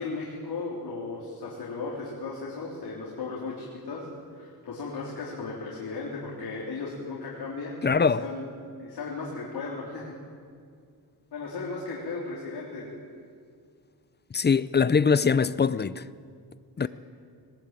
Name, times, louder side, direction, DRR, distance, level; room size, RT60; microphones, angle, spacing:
voice 1, 0.0-4.1 4.3-7.8 8.2-8.4 8.8-10.1 11.3-12.9 16.8-16.9, left 3 dB, 80° left, 3.7 m, -36 dB
voice 2, 7.8-8.2 14.3-16.0 16.8-16.9, left 5 dB, 25° left, 0.5 m, -22 dB
21.0 x 19.5 x 9.0 m
wide cardioid pair, 125°, 39 cm